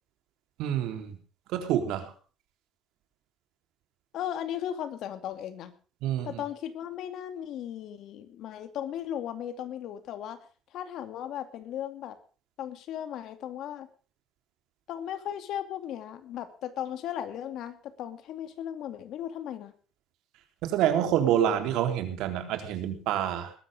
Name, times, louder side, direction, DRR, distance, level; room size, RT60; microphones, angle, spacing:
voice 1, 0.6-1.2 1.5-2.1 6.0-6.4 20.6-23.5, right 10 dB, 85° right, 7 dB, 3.7 m, -27 dB
voice 2, 4.1-5.7 6.2-10.4 10.7-12.2 12.6-13.9 14.9-19.7, left 10 dB, 65° left, 9 dB, 2.7 m, -36 dB
20.5 x 13.5 x 3.7 m, 0.37 s
cardioid pair, 130°, 0 cm